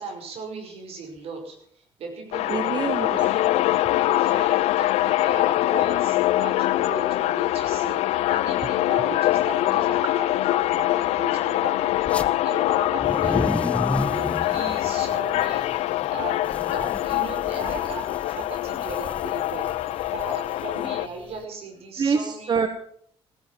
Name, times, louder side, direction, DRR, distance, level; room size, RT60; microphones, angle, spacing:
voice 1, 0.0-2.8 3.1-3.4 3.9-11.9 12.2-19.7 20.1-22.6, right 4 dB, 70° right, 4 dB, 5.4 m, -37 dB
sound 1, 2.3-21.1, left 15 dB, 85° left, 0.6 m, -24 dB
voice 2, 2.5-3.2 22.0-22.7, right 5 dB, 45° right, 9 dB, 1.4 m, -25 dB
sound 2, 12.0-12.3 12.9-21.4, left 2 dB, 10° left, 1.1 m, -33 dB
16.0 x 10.5 x 7.3 m, 0.64 s
cardioid pair, 85°, 11 cm